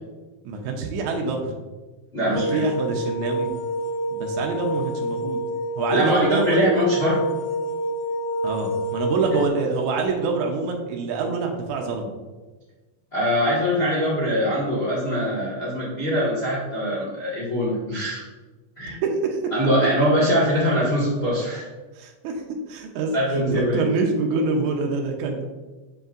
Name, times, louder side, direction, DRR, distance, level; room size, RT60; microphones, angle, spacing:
voice 1, 0.4-1.5 2.3-3.5 4.1-5.4 5.8-6.7 8.4-12.1 18.9-19.4 21.9-22.3 22.7-23.2 23.5-25.4, right 4 dB, 85° right, 2 dB, 1.7 m, -25 dB
voice 2, 2.1-2.6 5.9-7.2 13.1-18.2 18.8-19.0 19.5-21.7 23.1-23.8, equal, 60° left, -7 dB, 0.6 m, -22 dB
sound 1, 2.3-9.5, equal, 90° left, 2.7 m, -28 dB
7.3 x 5.3 x 2.5 m, 1.2 s
omnidirectional pair, 4.3 m